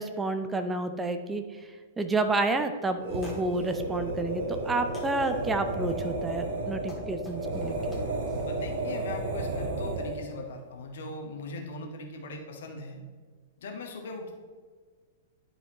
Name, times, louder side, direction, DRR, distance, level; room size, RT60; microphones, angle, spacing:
voice 1, 0.0-1.4 2.0-7.7, right 2 dB, 10° right, 7 dB, 0.5 m, -30 dB
sound 1, 2.9-3.0 3.2-3.8 4.3-4.7 4.9-5.5 6.4-8.7, left 1 dB, 10° left, 1.7 m, -52 dB
sound 2, 3.0-10.3, right 2 dB, 60° right, 1.3 m, -32 dB
voice 2, 8.5-13.0 13.6-14.3, left 2 dB, 60° left, 2 dB, 1.3 m, -40 dB
11.5 x 4.8 x 3.0 m, 1.5 s
figure-of-eight pair, 100°, 0 cm